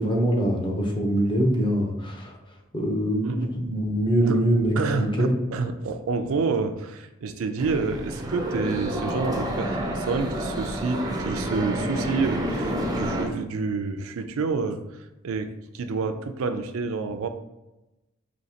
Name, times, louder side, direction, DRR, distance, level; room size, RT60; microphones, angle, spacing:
voice 1, 0.0-2.4 2.7-5.3, right 1 dB, 25° left, 0 dB, 0.7 m, -24 dB
voice 2, 4.7-14.8 15.2-17.3, right 4 dB, 90° right, 8 dB, 0.4 m, -28 dB
sound 1, 7.6-13.3, right 1 dB, 20° right, 0.5 m, -29 dB
5.2 x 2.8 x 2.8 m, 0.97 s
head